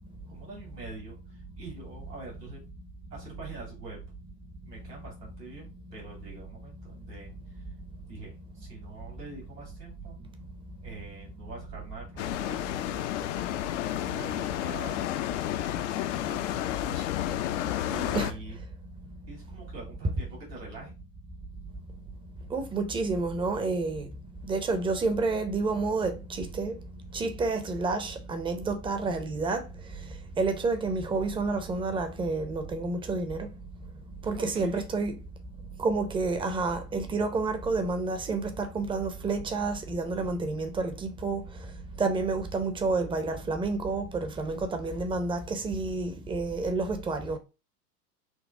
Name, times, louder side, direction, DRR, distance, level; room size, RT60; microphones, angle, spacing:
voice 1, 0.3-2.6 3.1-4.0 4.6-7.6 8.1-10.3 10.8-13.6 13.9-15.1 15.9-17.1 17.9-18.6 19.3-20.9 34.4-34.9, right 3 dB, 85° right, 2.7 m, -45 dB
sound 1, 12.2-18.3, left 13 dB, 50° left, 0.5 m, -31 dB
voice 2, 22.5-24.1 24.4-26.8 27.1-29.6 30.4-33.5 34.2-35.1 35.8-41.4 42.0-47.4, right 3 dB, 10° right, 0.6 m, -29 dB
6.2 x 2.2 x 3.6 m
hypercardioid pair, 100°, 48 cm